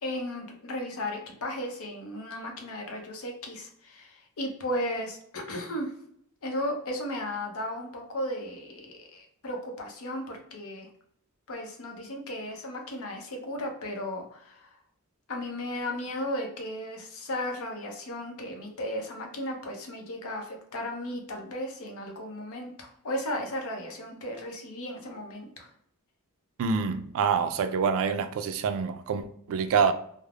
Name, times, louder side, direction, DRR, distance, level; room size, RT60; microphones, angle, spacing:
voice 1, 0.0-5.9 6.4-10.9 11.5-14.7 15.3-25.7, left 1 dB, 70° left, 0.7 m, -35 dB
voice 2, 26.6-29.9, right 6 dB, 65° right, 0.3 m, -26 dB
3.2 x 2.0 x 2.3 m
head